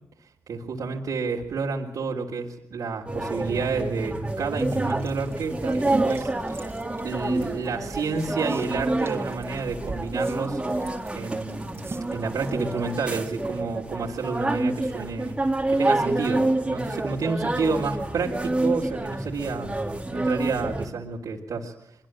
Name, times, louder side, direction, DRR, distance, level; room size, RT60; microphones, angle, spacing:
voice 1, 0.5-6.7 7.0-10.9 11.1-15.4 15.7-19.7 20.1-21.7, right 4 dB, 65° right, -3 dB, 3.5 m, -30 dB
sound 1, 3.1-20.9, right 2 dB, 15° right, 3.6 m, -28 dB
sound 2, 4.5-13.1, right 3 dB, 40° right, 3.4 m, -39 dB
24.0 x 23.0 x 7.6 m, 0.81 s
supercardioid pair, 50°, 6 cm